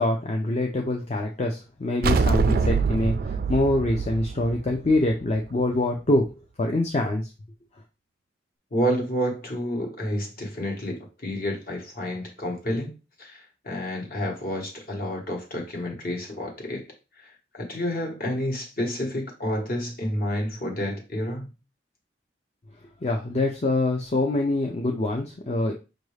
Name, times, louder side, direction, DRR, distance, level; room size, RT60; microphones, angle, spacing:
voice 1, 0.0-6.3 6.6-7.3 23.0-25.7, left 2 dB, 35° left, 0.5 m, -25 dB
sound 1, 2.0-5.5, right 4 dB, 55° right, 0.3 m, -24 dB
voice 2, 8.7-12.9 13.2-16.8 17.2-17.3 17.5-21.5, equal, 50° left, 1.2 m, -29 dB
5.4 x 2.5 x 3.2 m
head